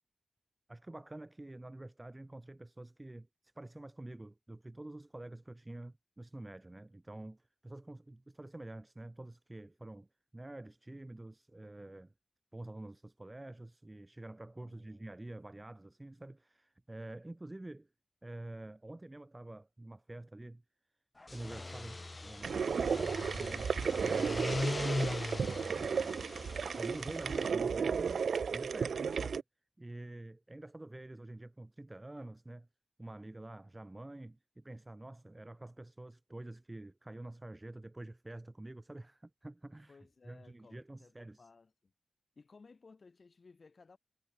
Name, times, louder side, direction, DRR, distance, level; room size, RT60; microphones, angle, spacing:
voice 1, 0.7-10.1 10.3-12.1 12.5-17.9 18.2-20.6 21.3-25.1 25.6-26.3 26.7-29.4 29.8-32.7 33.0-40.0 40.2-41.5, right 2 dB, 20° right, 3.1 m, -48 dB
voice 2, 14.6-15.1 39.9-41.9 42.3-44.0, left 4 dB, 50° left, 3.2 m, -60 dB
sound 1, 21.2-27.5, left 2 dB, 30° left, 0.3 m, -39 dB
sound 2, 22.4-29.4, right 6 dB, 90° right, 0.3 m, -34 dB
wide cardioid pair, 105°, 0 cm